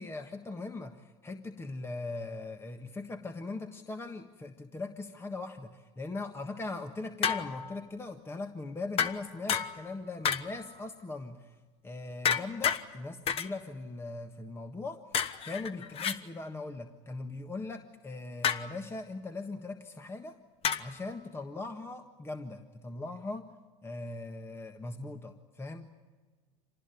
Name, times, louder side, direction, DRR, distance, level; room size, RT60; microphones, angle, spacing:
voice 1, 0.0-11.5 11.8-15.0 15.5-20.4 20.8-23.5 23.8-25.9, left 3 dB, 15° left, 6 dB, 1.5 m, -40 dB
sound 1, 7.2-7.8 9.0-9.9 10.2-10.7 12.2-12.8 13.3-13.5 15.1-16.2 18.4-18.8 20.6-21.0, left 8 dB, 40° left, 1.3 m, -30 dB
26.5 x 19.5 x 9.7 m, 1.3 s
supercardioid pair, 110°, 15 cm